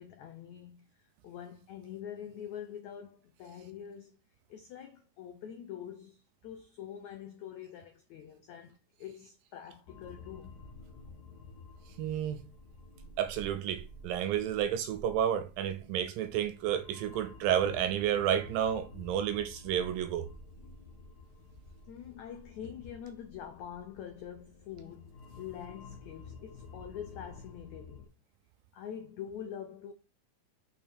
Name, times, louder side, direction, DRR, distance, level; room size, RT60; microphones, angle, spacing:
voice 1, 0.0-4.1 4.5-10.6 21.9-28.1 28.7-29.9, left 9 dB, 90° left, 1.6 m, -45 dB
sound 1, 9.9-28.1, left 2 dB, 60° left, 0.9 m, -51 dB
voice 2, 12.0-12.4 13.2-20.3, right 10 dB, 80° right, 2.1 m, -31 dB
6.8 x 5.4 x 4.3 m
omnidirectional pair, 4.6 m